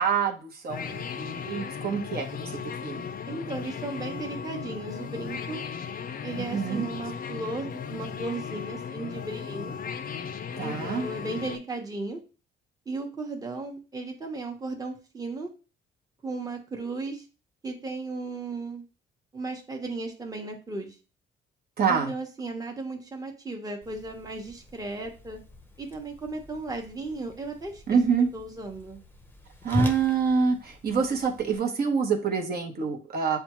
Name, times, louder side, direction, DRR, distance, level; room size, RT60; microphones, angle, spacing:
voice 1, 0.0-3.1 6.5-6.9 10.6-11.1 21.8-22.1 27.9-28.3 29.6-33.4, right 6 dB, 50° right, 2 dB, 1.0 m, -26 dB
sound 1, 0.7-11.6, left 7 dB, 45° left, 0.4 m, -36 dB
voice 2, 3.3-5.6 6.2-9.7 10.6-12.2 12.9-15.5 16.2-17.2 17.6-18.8 19.3-21.0 21.9-25.4 25.8-28.0 28.3-29.0, right 3 dB, 20° right, 2 dB, 0.9 m, -35 dB
Whoosh swoosh swish, 23.8-31.6, left 1 dB, 10° left, 0.7 m, -38 dB
6.9 x 2.3 x 3.0 m, 0.34 s
cardioid pair, 90°, 20 cm